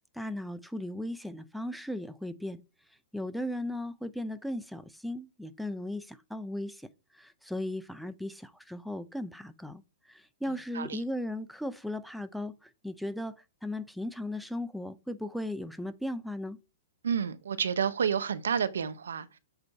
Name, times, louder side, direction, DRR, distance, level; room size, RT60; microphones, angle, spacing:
voice 1, 0.1-2.6 3.1-16.6, left 1 dB, ahead, 0.4 m, -37 dB
voice 2, 17.0-19.3, right 7 dB, 85° right, 0.6 m, -29 dB
8.0 x 2.7 x 4.5 m
hypercardioid pair, 130°, 0 cm